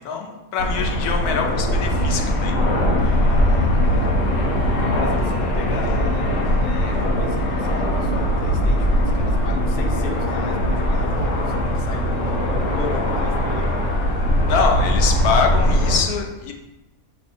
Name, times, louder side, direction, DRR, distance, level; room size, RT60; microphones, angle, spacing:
voice 1, 0.0-2.5 14.5-16.5, left 5 dB, 85° left, 3 dB, 1.3 m, -24 dB
sound 1, 0.6-16.0, equal, 60° left, 1.3 m, -21 dB
sound 2, 1.9-14.8, left 1 dB, 5° right, 1.2 m, -32 dB
voice 2, 3.0-13.8, left 3 dB, 40° left, 2 dB, 0.7 m, -36 dB
6.8 x 3.2 x 4.4 m, 1.1 s
omnidirectional pair, 1.6 m